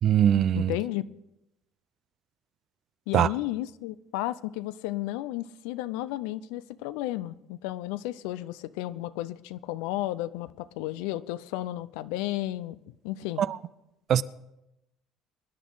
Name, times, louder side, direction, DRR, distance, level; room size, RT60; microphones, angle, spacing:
voice 1, 0.0-0.7 3.1-3.3 13.4-13.6 14.1-14.2, right 10 dB, 55° right, 0.5 m, -21 dB
voice 2, 0.5-1.1 3.1-13.4, left 15 dB, 80° left, 0.5 m, -33 dB
24.0 x 10.0 x 4.0 m
hypercardioid pair, 70°, 0 cm